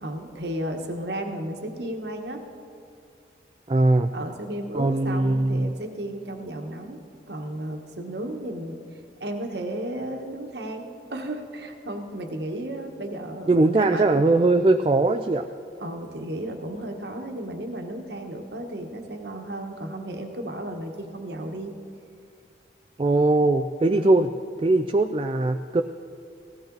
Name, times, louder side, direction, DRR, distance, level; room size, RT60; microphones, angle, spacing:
voice 1, 0.0-2.4 4.1-7.0 7.3-8.9 9.2-14.2 15.8-21.8 23.9-24.2, right 1 dB, 75° right, 4 dB, 1.3 m, -34 dB
voice 2, 3.7-4.1 4.7-5.7 13.5-15.5 23.0-24.3 24.6-25.8, right 2 dB, 30° right, 7 dB, 0.3 m, -20 dB
17.0 x 14.5 x 3.9 m, 2.4 s
head